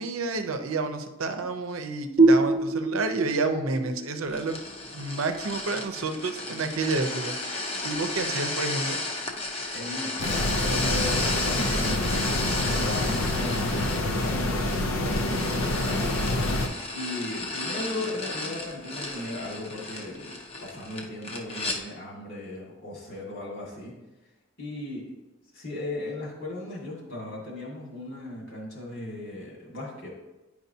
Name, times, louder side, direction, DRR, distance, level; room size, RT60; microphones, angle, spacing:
voice 1, 0.0-4.5 4.9-7.3 7.8-9.0, right 3 dB, 85° right, 7 dB, 0.6 m, -29 dB
sound 1, 2.2-5.6, right 2 dB, 30° right, 0.6 m, -24 dB
sound 2, 4.3-21.8, left 2 dB, 30° left, 0.6 m, -33 dB
voice 2, 9.7-16.2 16.9-23.9 24.6-25.1 25.5-30.1, left 1 dB, 65° left, -3 dB, 1.9 m, -37 dB
sound 3, 10.2-16.7, left 1 dB, 90° left, 0.6 m, -27 dB
9.2 x 4.8 x 2.7 m, 1.0 s
head